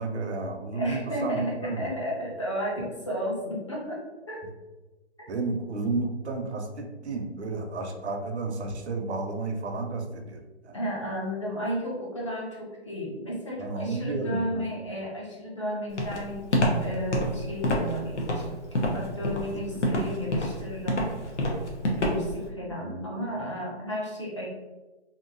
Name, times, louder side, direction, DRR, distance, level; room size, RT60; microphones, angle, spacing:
voice 1, 0.0-1.9 5.3-10.8 13.6-14.7 19.7-19.8 22.8-23.1, right 3 dB, 80° right, 4 dB, 0.6 m, -32 dB
voice 2, 0.7-4.4 10.7-18.5 18.9-21.1 22.0-24.5, equal, 30° left, -4 dB, 0.4 m, -33 dB
Walk footsteps, 16.0-22.4, left 1 dB, 90° left, 0.8 m, -27 dB
2.8 x 2.5 x 2.5 m, 1.2 s
hypercardioid pair, 155°, 34 cm